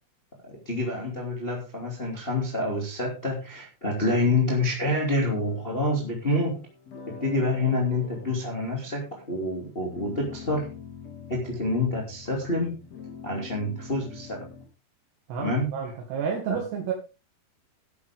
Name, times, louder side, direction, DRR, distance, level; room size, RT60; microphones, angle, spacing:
voice 1, 0.4-6.6 7.1-10.8 11.3-12.8 13.2-14.5 15.4-15.7 16.5-16.6, left 2 dB, 15° left, -1 dB, 2.7 m, -27 dB
sound 1, 5.4-14.7, left 5 dB, 40° left, 4.3 m, -45 dB
voice 2, 15.3-16.9, right 7 dB, 85° right, 0 dB, 4.2 m, -30 dB
13.0 x 10.5 x 3.7 m, 0.31 s
omnidirectional pair, 4.7 m